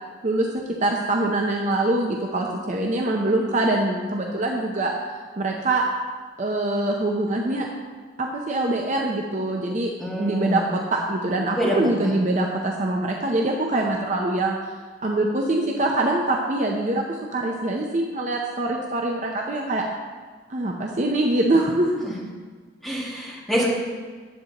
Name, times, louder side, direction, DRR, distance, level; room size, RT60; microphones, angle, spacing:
voice 1, 0.2-5.8 6.4-7.7 8.2-14.6 15.0-19.8 20.5-21.9, right 2 dB, 40° right, 0 dB, 0.6 m, -24 dB
voice 2, 10.0-10.6 11.5-11.7 12.1-12.2 22.0-22.1 22.8-23.7, equal, ahead, -7 dB, 1.9 m, -26 dB
10.5 x 7.9 x 2.9 m, 1.5 s
head